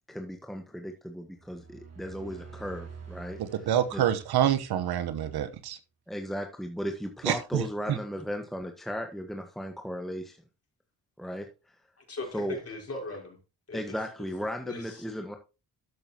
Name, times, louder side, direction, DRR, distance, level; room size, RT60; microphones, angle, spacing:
voice 1, 0.1-3.4 3.9-4.0 6.1-10.4 11.2-11.8 12.3-12.6 13.7-15.4, equal, ahead, 4 dB, 1.4 m, -36 dB
sound 1, 1.3-5.2, right 5 dB, 40° right, 4.1 m, -48 dB
voice 2, 3.4-5.8 7.2-7.6 7.9-8.0, right 11 dB, 75° right, 12 dB, 1.2 m, -27 dB
voice 3, 12.0-13.4 13.7-14.0 14.7-15.1, left 2 dB, 40° left, 1 dB, 5.3 m, -39 dB
13.0 x 6.9 x 3.0 m, 0.30 s
cardioid pair, 75°, 38 cm